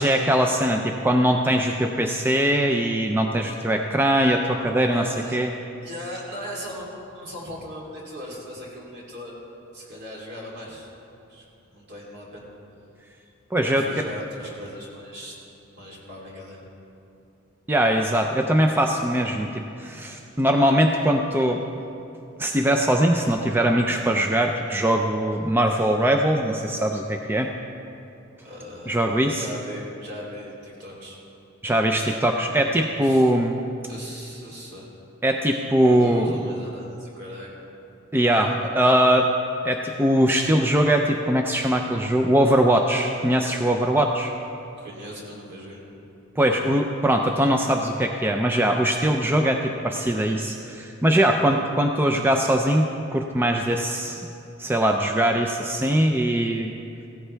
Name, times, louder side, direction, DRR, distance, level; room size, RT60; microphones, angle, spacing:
voice 1, 0.0-5.0 5.3-5.5 13.5-14.1 17.7-21.6 22.4-27.5 28.9-29.4 31.6-33.6 35.2-36.5 38.1-39.3 39.6-44.3 46.4-52.8 53.1-54.3 54.6-56.7, right 1 dB, 10° right, 3 dB, 0.5 m, -21 dB
voice 2, 4.9-5.4 5.8-6.9 7.1-9.4 9.7-10.9 11.3-12.4 13.8-15.3 15.7-16.6 28.4-31.2 32.9-33.3 33.9-34.9 35.8-37.5 44.8-45.8, equal, 55° right, -4 dB, 3.2 m, -38 dB
16.5 x 14.5 x 3.4 m, 2.7 s
head